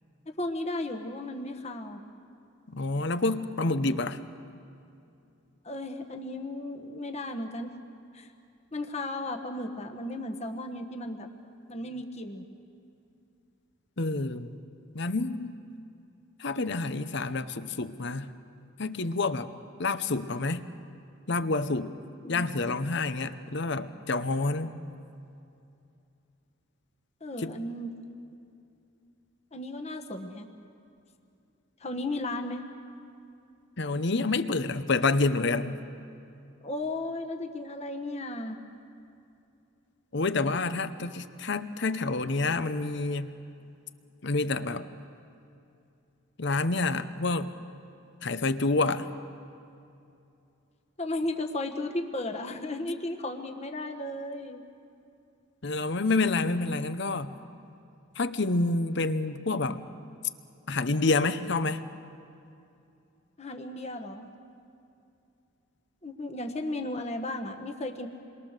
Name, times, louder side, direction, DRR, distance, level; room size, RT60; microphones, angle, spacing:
voice 1, 0.4-2.0 5.6-7.7 8.1-8.3 8.7-11.3 11.7-12.4 22.2-22.8 27.2-27.9 29.5-30.5 31.8-32.6 36.6-38.6 41.0-41.1 51.0-54.6 63.4-64.3 66.0-68.1, left 1 dB, 30° left, 4 dB, 1.3 m, -35 dB
voice 2, 2.7-4.2 14.0-14.6 14.9-15.5 16.4-18.3 18.8-19.5 19.8-20.6 21.3-21.9 22.3-24.7 27.4-27.5 33.8-35.8 40.1-43.3 44.2-44.9 46.4-47.5 48.2-49.1 55.6-57.4 58.2-59.8 60.7-61.8, left 3 dB, 55° left, 11 dB, 0.9 m, -28 dB
28.5 x 22.5 x 6.7 m, 2.7 s
head